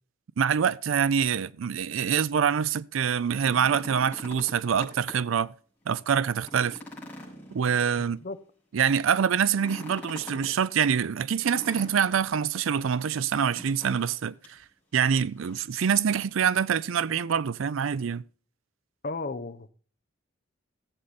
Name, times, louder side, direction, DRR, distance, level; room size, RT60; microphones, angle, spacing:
voice 1, 0.4-5.5 5.9-6.8 7.5-8.2 8.7-14.6 14.9-18.2, right 7 dB, 80° right, 0.4 m, -25 dB
sound 1, 3.1-5.4 5.8-5.9 6.3-8.2 9.4-10.5 11.4-12.3 13.5-14.2 14.4-14.6 15.1-15.7 16.9-17.0, left 1 dB, 10° left, 5.6 m, -44 dB
voice 2, 19.0-19.7, left 3 dB, 45° left, 0.7 m, -34 dB
14.5 x 7.9 x 4.1 m
head